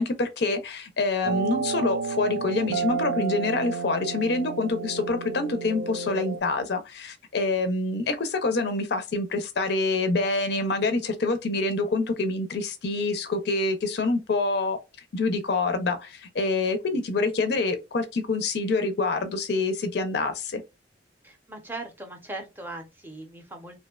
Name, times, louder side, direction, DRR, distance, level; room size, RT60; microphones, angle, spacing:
voice 1, 0.0-14.8 15.1-20.6, left 3 dB, 60° left, 0.5 m, -26 dB
sound 1, 1.2-6.4, right 5 dB, 65° right, 0.3 m, -31 dB
voice 2, 21.2-23.8, right 2 dB, 10° right, 0.6 m, -39 dB
2.6 x 2.1 x 2.2 m
head